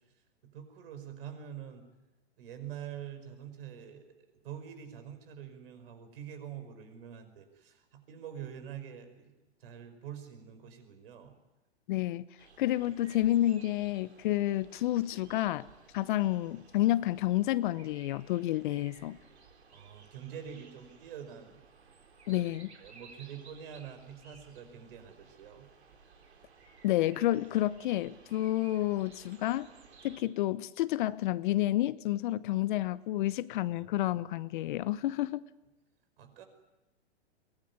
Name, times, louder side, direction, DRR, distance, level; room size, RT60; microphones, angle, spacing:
voice 1, 0.5-1.8 2.4-4.0 4.4-9.3 9.6-11.3 19.7-21.6 22.3-22.5 22.7-25.7 36.2-36.4, right 9 dB, 60° right, 8 dB, 5.4 m, -45 dB
voice 2, 11.9-12.2 12.6-15.7 15.9-19.2 22.3-22.7 26.8-29.7 30.0-35.4, left 15 dB, 50° left, 17 dB, 0.9 m, -30 dB
sound 1, 12.4-30.2, right 5 dB, 80° right, 4.0 m, -57 dB
23.0 x 19.5 x 9.6 m, 1.0 s
hypercardioid pair, 125°, 32 cm